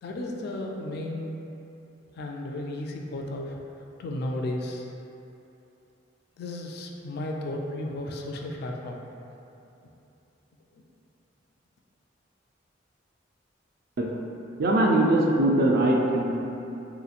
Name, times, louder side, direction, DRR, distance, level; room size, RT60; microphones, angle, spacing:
voice 1, 0.0-1.3 2.2-3.6 4.0-4.9 6.4-9.0, left 1 dB, 60° left, 1 dB, 0.3 m, -33 dB
voice 2, 14.0-14.3 14.6-16.4, right 1 dB, 55° right, -1 dB, 0.4 m, -22 dB
3.1 x 2.9 x 2.4 m, 2.8 s
head